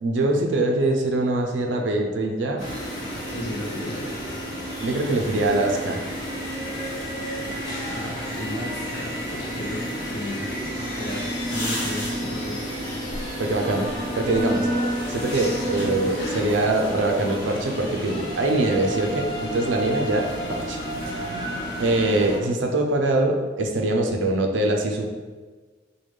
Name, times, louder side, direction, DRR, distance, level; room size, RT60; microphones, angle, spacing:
voice 1, 0.0-2.6 4.8-6.0 13.4-14.7 15.1-20.8 21.8-25.1, right 2 dB, 80° right, 2 dB, 0.4 m, -23 dB
sound 1, 2.6-22.4, equal, 25° left, 1.1 m, -30 dB
voice 2, 3.3-4.1 7.9-10.4 10.9-12.6 15.3-16.4, left 1 dB, 60° left, -2 dB, 0.7 m, -35 dB
sound 2, 10.4-16.6, left 1 dB, 80° left, 1.0 m, -38 dB
3.3 x 2.2 x 3.1 m, 1.4 s
head